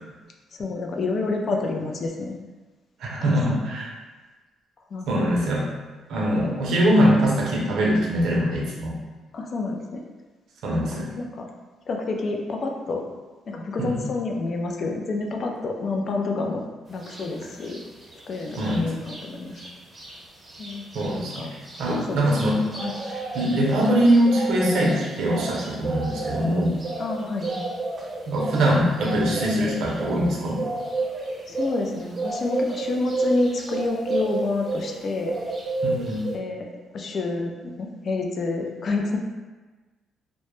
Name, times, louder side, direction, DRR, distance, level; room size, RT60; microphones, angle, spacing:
voice 1, 0.5-2.3 3.2-3.3 4.9-5.3 6.3-6.5 9.3-10.0 10.9-11.5 11.9-13.0 13.5-16.6 16.9-17.8 18.3-19.6 20.6-20.8 21.4-21.5 21.9-22.2 22.8-23.0 27.0-27.6 31.5-35.3 36.3-39.2, left 3 dB, 55° left, 2 dB, 0.3 m, -28 dB
voice 2, 3.0-3.9 5.1-5.6 6.1-9.0 10.6-11.1 13.8-14.0 18.6-18.9 20.9-22.6 23.3-26.8 28.3-30.6 35.8-36.3, equal, 75° right, -3 dB, 0.5 m, -22 dB
sound 1, 17.0-17.2 17.6-19.2 19.5-19.7 19.9-35.0 35.2-36.3, right 3 dB, 35° right, 0.6 m, -31 dB
2.1 x 2.0 x 3.0 m, 1.3 s
cardioid pair, 90°, 0 cm